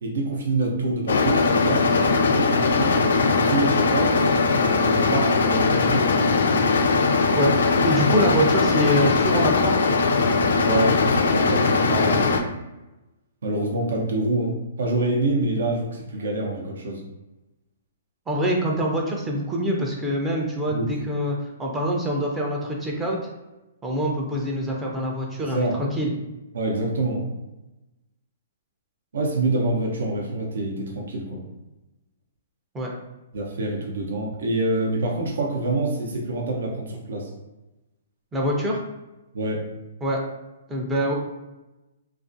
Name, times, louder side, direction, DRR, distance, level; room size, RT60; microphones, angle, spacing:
voice 1, 0.0-3.0 3.4-4.2 4.9-6.3 10.6-12.4 13.4-17.0 20.7-21.0 25.4-25.8 26.5-27.3 29.1-31.4 33.3-37.3 39.3-39.7, right 2 dB, 80° right, 0 dB, 0.6 m, -26 dB
sound 1, 1.1-12.4, left 4 dB, 75° left, 0.3 m, -20 dB
voice 2, 7.3-9.8 18.3-23.2 23.8-26.1 32.7-32.9 38.3-38.8 40.0-40.2 40.7-41.1, equal, 10° right, -1 dB, 0.4 m, -25 dB
2.3 x 2.3 x 2.5 m, 1.0 s
hypercardioid pair, 150°, 0 cm